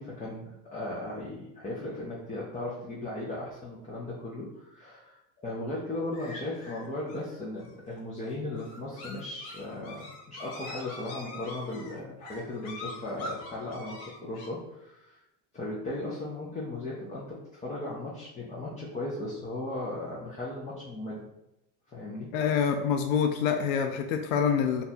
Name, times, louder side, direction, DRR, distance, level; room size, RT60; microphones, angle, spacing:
voice 1, 0.0-15.2 15.5-21.3 21.9-22.4, left 2 dB, 20° left, -6 dB, 0.7 m, -37 dB
sound 1, 6.1-14.5, left 2 dB, 60° left, 0.9 m, -44 dB
voice 2, 22.3-24.8, left 7 dB, 85° left, 5 dB, 0.5 m, -26 dB
2.6 x 2.4 x 4.2 m, 0.91 s
supercardioid pair, 110°, 40 cm